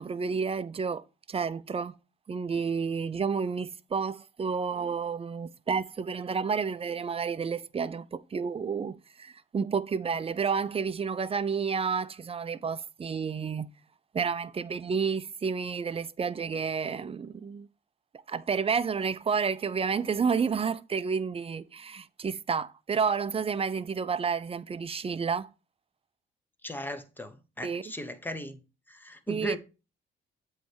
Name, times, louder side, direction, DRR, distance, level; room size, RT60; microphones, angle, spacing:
voice 1, 0.0-1.9 2.3-13.7 14.1-17.7 18.3-25.5 27.6-27.8 29.3-29.6, right 6 dB, 30° right, 0.5 m, -30 dB
voice 2, 26.6-28.6 28.9-29.6, equal, 10° left, 1.1 m, -37 dB
8.0 x 3.2 x 6.2 m
cardioid pair, 90°, 20 cm